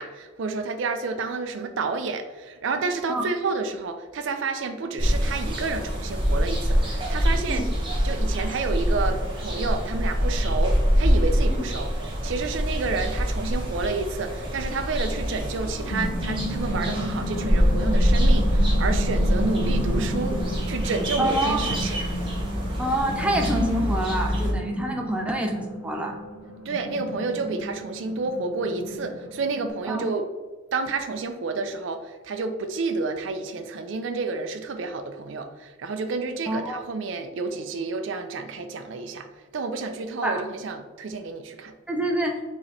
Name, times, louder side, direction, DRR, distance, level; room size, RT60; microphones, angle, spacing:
voice 1, 0.0-7.7 8.0-11.9 12.2-20.4 20.7-22.0 26.7-30.2 30.7-39.3 39.5-41.7, right 4 dB, 65° right, 7 dB, 0.4 m, -30 dB
sound 1, 5.0-24.5, equal, 25° right, 0.9 m, -25 dB
sound 2, 15.4-29.7, equal, 85° left, 1.0 m, -33 dB
voice 2, 21.2-21.6 22.8-26.2 29.9-30.1 36.5-36.8 40.2-40.4 41.9-42.4, right 1 dB, 5° right, 2 dB, 0.5 m, -26 dB
4.8 x 2.9 x 3.2 m, 1.3 s
head